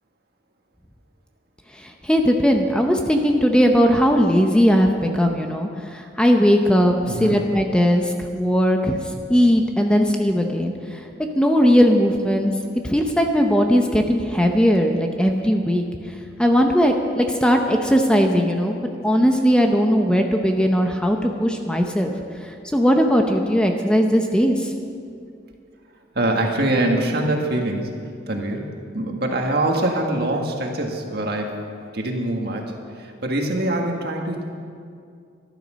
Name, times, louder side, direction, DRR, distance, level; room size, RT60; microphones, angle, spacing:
voice 1, 1.7-9.0 9.3-11.1 11.4-12.5 12.8-15.8 16.4-22.1 22.4-24.7, equal, 5° left, 3 dB, 0.8 m, -18 dB
voice 2, 7.1-7.4 26.1-27.9 28.3-28.7 28.9-31.6 31.9-34.4, right 1 dB, 60° right, 1 dB, 1.8 m, -24 dB
14.0 x 11.5 x 6.3 m, 2.3 s
head